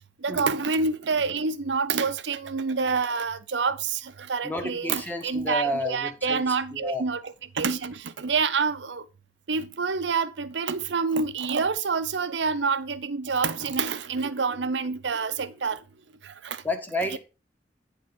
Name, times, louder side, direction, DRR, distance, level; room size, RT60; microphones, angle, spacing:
voice 1, 0.2-9.1 9.5-15.8 16.2-16.6 17.1-17.2, right 5 dB, 80° right, 0.7 m, -27 dB
voice 2, 4.4-6.4 6.7-7.0 16.6-17.2, left 1 dB, 10° left, 1.2 m, -30 dB
10.0 x 3.7 x 6.0 m
head